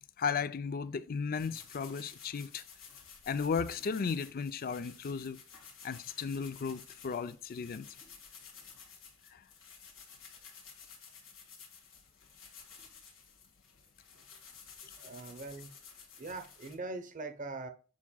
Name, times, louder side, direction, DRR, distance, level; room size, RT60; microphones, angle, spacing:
voice 1, 0.2-2.6 3.3-5.4 5.8-7.9 9.3-9.4, left 5 dB, 45° left, 0.4 m, -35 dB
sound 1, 1.3-16.7, left 6 dB, 75° left, 1.9 m, -54 dB
voice 2, 14.9-15.7 16.2-17.7, right 3 dB, 40° right, 0.8 m, -42 dB
7.3 x 5.8 x 2.2 m
head